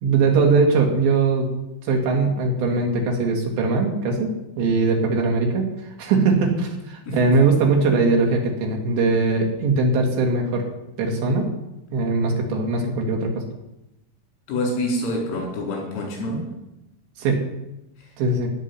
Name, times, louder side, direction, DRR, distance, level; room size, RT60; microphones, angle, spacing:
voice 1, 0.0-1.5 1.8-5.7 6.0-10.7 11.0-11.5 11.9-13.4 17.2-17.4 18.2-18.5, right 3 dB, 65° right, 1 dB, 4.1 m, -20 dB
voice 2, 14.5-16.5 18.0-18.1, left 1 dB, 85° left, 0 dB, 7.1 m, -26 dB
16.0 x 6.3 x 9.7 m, 0.92 s
omnidirectional pair, 5.8 m